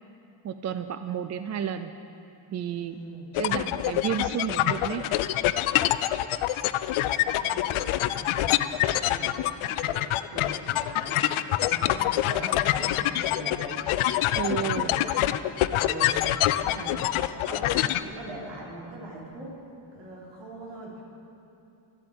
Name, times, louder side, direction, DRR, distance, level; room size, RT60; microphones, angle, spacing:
voice 1, 0.4-1.9 2.5-3.0 3.4-5.1 14.4-14.9, right 8 dB, 35° right, 9 dB, 0.4 m, -31 dB
voice 2, 2.7-3.4 6.8-15.4 15.7-17.1 17.4-19.6 19.9-21.0, right 1 dB, 60° right, -3 dB, 3.4 m, -42 dB
sound 1, 3.3-18.0, left 13 dB, 80° left, 0.6 m, -26 dB
13.0 x 8.3 x 8.6 m, 2.8 s
cardioid pair, 130°, 48 cm